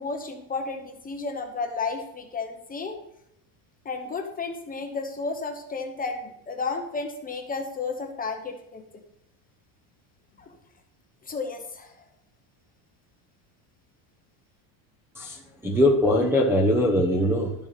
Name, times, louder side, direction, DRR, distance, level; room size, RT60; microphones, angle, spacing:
voice 1, 0.0-2.9 3.8-8.8 10.5-10.6 11.2-11.9, left 4 dB, 15° left, 4 dB, 1.0 m, -32 dB
voice 2, 15.1-17.5, left 1 dB, 5° right, -4 dB, 0.9 m, -22 dB
12.0 x 7.0 x 4.1 m, 0.78 s
cardioid pair, 155°, 49 cm